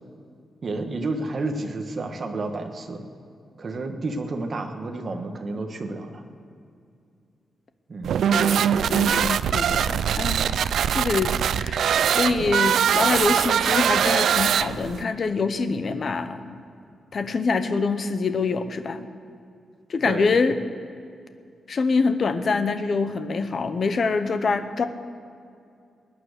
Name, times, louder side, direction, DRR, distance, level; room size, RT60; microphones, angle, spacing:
voice 1, 0.6-3.1 3.6-6.2 7.9-8.1 20.0-20.3, right 2 dB, 35° right, 4 dB, 1.3 m, -30 dB
sound 1, 8.0-15.0, right 8 dB, 75° right, 0.3 m, -22 dB
voice 2, 8.3-16.6 17.1-19.1 19.9-20.6 21.7-24.9, left 4 dB, 40° left, 10 dB, 0.8 m, -25 dB
20.5 x 9.6 x 6.6 m, 2.4 s
wide cardioid pair, 180°, 0 cm